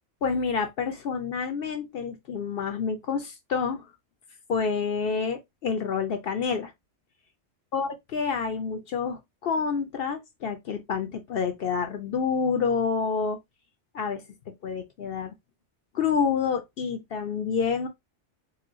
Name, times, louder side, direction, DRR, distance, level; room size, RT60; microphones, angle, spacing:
voice 1, 0.2-3.9 4.5-6.7 7.7-13.4 13.9-14.2 14.6-15.3 15.9-17.9, left 5 dB, 60° left, 0.7 m, -28 dB
4.1 x 2.2 x 2.5 m
omnidirectional pair, 1.3 m